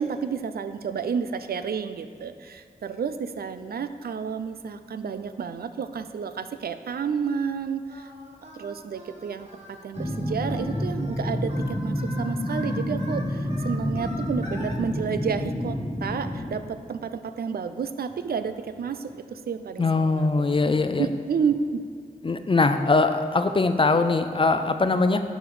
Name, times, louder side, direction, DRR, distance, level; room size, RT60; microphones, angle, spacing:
voice 1, 0.0-8.1 8.5-20.5 21.0-21.8, right 6 dB, 85° right, 10 dB, 0.4 m, -31 dB
Singing, 7.9-14.8, equal, 45° right, 1.5 m, -43 dB
sound 1, 10.0-16.6 18.1-18.3 18.8-19.1 20.7-20.8 21.1-21.6 23.5-23.9, left 1 dB, 15° left, 0.9 m, -29 dB
voice 2, 19.8-21.1 22.2-25.2, left 3 dB, 35° left, 9 dB, 0.5 m, -22 dB
11.0 x 5.2 x 4.8 m, 2.3 s
wide cardioid pair, 80°, 15 cm